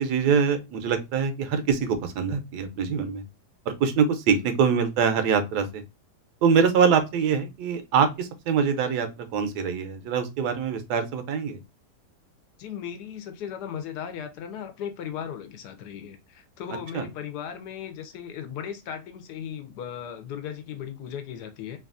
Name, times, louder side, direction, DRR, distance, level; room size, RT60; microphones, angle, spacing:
voice 1, 0.0-3.2 3.7-5.8 6.4-11.6 16.9-17.0, right 6 dB, 80° right, 1.2 m, -24 dB
voice 2, 12.6-21.9, left 8 dB, 85° left, 1.2 m, -37 dB
3.2 x 2.3 x 2.4 m
omnidirectional pair, 1.7 m